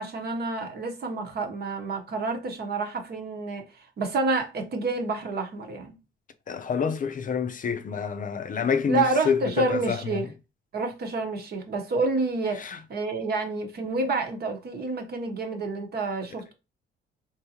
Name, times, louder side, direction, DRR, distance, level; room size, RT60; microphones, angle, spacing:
voice 1, 0.0-6.0 8.9-10.3 10.7-16.5, right 3 dB, 55° right, 1.0 m, -29 dB
voice 2, 6.5-10.2 12.6-12.8, left 6 dB, 45° left, 0.5 m, -28 dB
3.5 x 2.7 x 2.8 m
cardioid pair, 90°, 20 cm